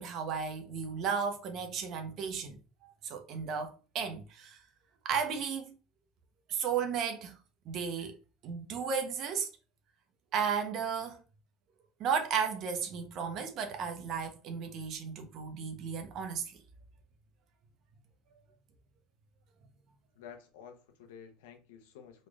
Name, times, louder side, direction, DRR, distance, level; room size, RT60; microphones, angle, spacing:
voice 1, 0.0-2.6 2.8-4.6 5.0-5.8 6.5-7.3 7.7-8.2 8.4-9.5 10.3-11.2 12.0-16.5, right 6 dB, 55° right, 0.9 m, -34 dB
voice 2, 20.2-22.3, left 7 dB, 85° left, 0.8 m, -51 dB
4.3 x 3.0 x 2.4 m
supercardioid pair, 100°, 0 cm